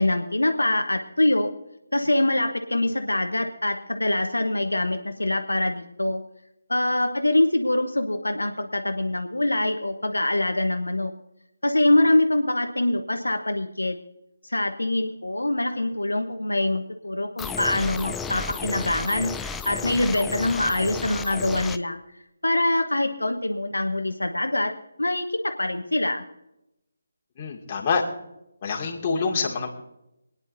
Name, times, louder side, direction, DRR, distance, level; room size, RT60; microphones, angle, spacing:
voice 1, 0.0-1.5 1.9-6.2 6.7-11.1 11.6-14.0 14.4-22.0 22.4-24.7 25.0-26.2, left 1 dB, 80° left, 5 dB, 1.1 m, -24 dB
sound 1, 17.4-21.8, left 5 dB, 5° left, 0.3 m, -33 dB
voice 2, 27.4-28.0 28.6-29.7, left 5 dB, 25° left, -1 dB, 2.2 m, -26 dB
25.5 x 9.8 x 2.7 m, 0.86 s
figure-of-eight pair, 150°, 0 cm